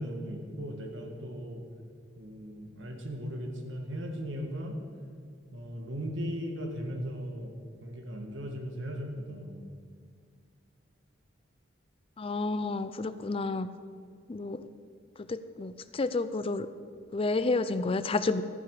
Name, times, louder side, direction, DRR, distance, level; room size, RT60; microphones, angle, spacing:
voice 1, 0.0-1.6 2.1-4.7 5.5-7.5 7.8-9.7, equal, 75° right, 3 dB, 1.7 m, -37 dB
voice 2, 12.2-13.7 14.3-14.6 15.3-16.7 17.1-18.4, left 3 dB, 30° left, 13 dB, 0.4 m, -30 dB
14.5 x 9.9 x 4.9 m, 2.1 s
head